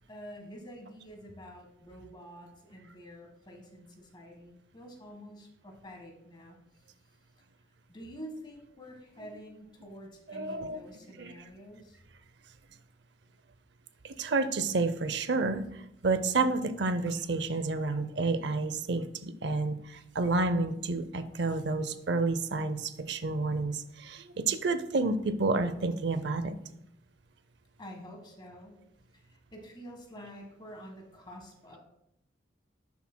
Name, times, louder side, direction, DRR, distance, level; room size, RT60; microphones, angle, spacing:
voice 1, 0.1-6.9 7.9-12.0 27.8-28.8 29.1-31.8, equal, 25° left, 2 dB, 1.5 m, -48 dB
voice 2, 10.3-10.8 11.2-11.3 14.0-26.5, right 3 dB, 60° right, 11 dB, 0.6 m, -30 dB
10.5 x 7.0 x 2.2 m, 0.79 s
head